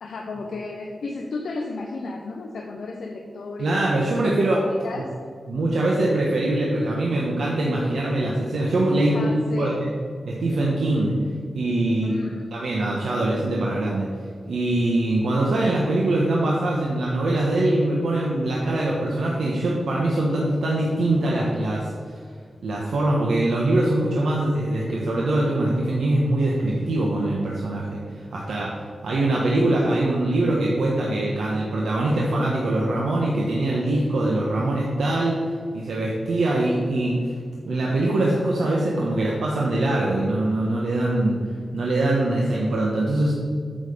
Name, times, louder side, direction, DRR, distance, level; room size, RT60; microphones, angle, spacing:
voice 1, 0.0-5.1 9.0-9.8 12.0-12.4, left 3 dB, 75° left, 1 dB, 0.9 m, -33 dB
voice 2, 3.6-4.6 4.9-5.0 5.5-9.9 10.2-11.1 11.5-12.1 12.5-14.1 14.4-22.2 22.6-28.7 29.0-35.4 35.7-37.2 37.7-41.4 41.7-43.3, right 1 dB, 90° right, -3 dB, 1.3 m, -23 dB
9.1 x 6.6 x 5.2 m, 2.2 s
wide cardioid pair, 160°, 0 cm